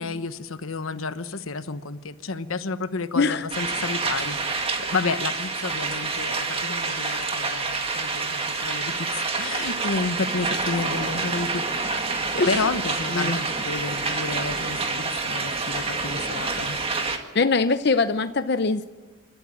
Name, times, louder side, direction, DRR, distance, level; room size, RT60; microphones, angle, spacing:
voice 1, 0.0-12.0 12.5-16.8, left 4 dB, 85° left, 11 dB, 1.1 m, -31 dB
sound 1, 3.5-17.2, right 3 dB, 30° right, 1.8 m, -28 dB
voice 2, 17.3-18.9, left 4 dB, 50° left, 10 dB, 0.7 m, -22 dB
28.5 x 13.0 x 8.7 m, 1.3 s
head